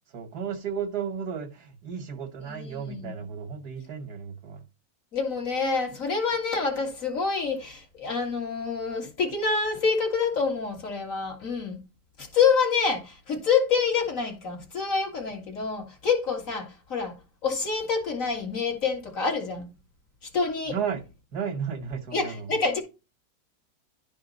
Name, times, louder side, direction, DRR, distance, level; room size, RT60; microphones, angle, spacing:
voice 1, 0.1-4.6 20.7-21.0 21.3-22.5, right 7 dB, 90° right, 1.8 m, -33 dB
voice 2, 2.4-3.2 5.1-11.8 12.2-17.1 17.4-19.7 20.3-20.8 22.1-22.8, left 5 dB, 55° left, 2.3 m, -27 dB
11.5 x 5.0 x 4.0 m
omnidirectional pair, 1.7 m